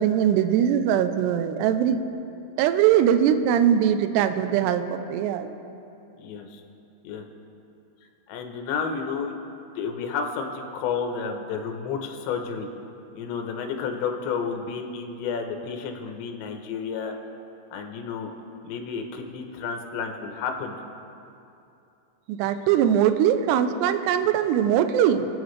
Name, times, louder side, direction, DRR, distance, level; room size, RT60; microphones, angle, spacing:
voice 1, 0.0-2.0 2.6-5.6 22.3-25.3, right 9 dB, 85° right, 9 dB, 2.6 m, -21 dB
voice 2, 6.2-6.6 7.0-7.2 8.3-9.3 9.8-12.7 13.1-17.1 17.7-18.3 18.6-20.8, left 6 dB, 80° left, 4 dB, 3.2 m, -31 dB
27.0 x 9.1 x 3.2 m, 2.7 s
omnidirectional pair, 5.2 m